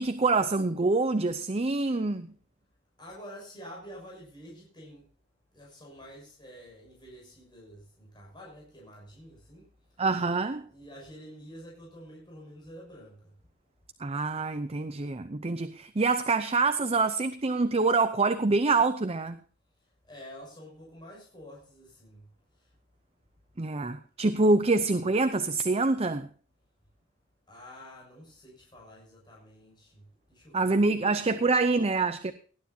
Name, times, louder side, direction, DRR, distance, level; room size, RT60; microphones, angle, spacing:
voice 1, 0.0-2.3 10.0-10.7 14.0-19.4 23.6-26.3 30.5-32.3, right 3 dB, 30° right, 0.6 m, -26 dB
voice 2, 3.0-5.0 5.5-9.6 10.7-13.3 20.0-22.3 22.6-22.7 27.5-30.0 30.3-31.4, equal, 20° left, 6.6 m, -48 dB
19.0 x 11.5 x 2.8 m
head